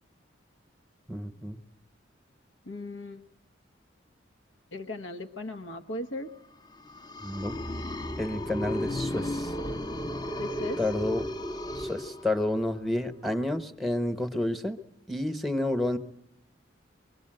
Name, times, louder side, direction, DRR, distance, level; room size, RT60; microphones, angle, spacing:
voice 1, 1.1-1.6 7.2-7.6 8.2-9.5 10.8-11.3 11.7-14.8 15.1-16.0, left 1 dB, ahead, 9 dB, 1.1 m, -30 dB
voice 2, 2.7-3.2 4.7-6.3 10.4-10.9, left 1 dB, 85° left, 6 dB, 1.2 m, -37 dB
sound 1, 6.8-12.7, left 1 dB, 20° left, 0.9 m, -34 dB
25.0 x 23.0 x 7.8 m, 0.78 s
head